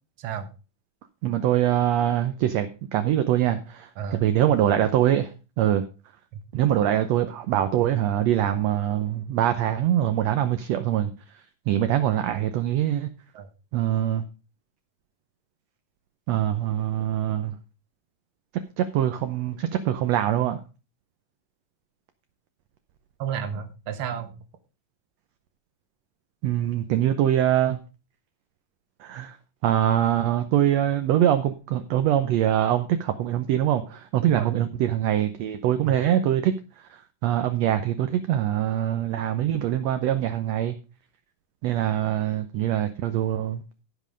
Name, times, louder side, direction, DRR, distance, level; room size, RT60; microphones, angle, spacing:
voice 1, 1.2-5.3 5.6-5.8 6.5-11.1 11.7-13.1 13.7-14.2 16.3-17.6 18.8-20.6 26.4-27.8 29.0-29.4 29.6-36.5 36.9-40.7 41.6-43.6, right 11 dB, 70° right, 1.7 m, -23 dB
voice 2, 23.2-24.4 34.2-34.6 35.8-35.9, right 8 dB, 55° right, 1.7 m, -32 dB
15.5 x 5.3 x 5.2 m
omnidirectional pair, 3.7 m